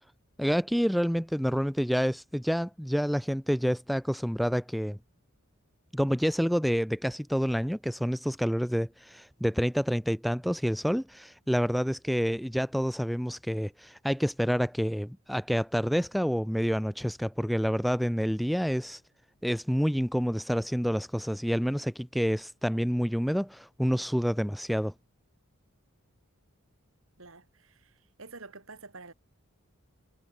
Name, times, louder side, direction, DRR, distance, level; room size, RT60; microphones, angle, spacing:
voice 1, 0.4-5.0 5.9-19.0 19.4-24.9, equal, ahead, 0.3 m, -28 dB
voice 2, 27.2-29.1, right 3 dB, 65° right, 2.9 m, -48 dB
head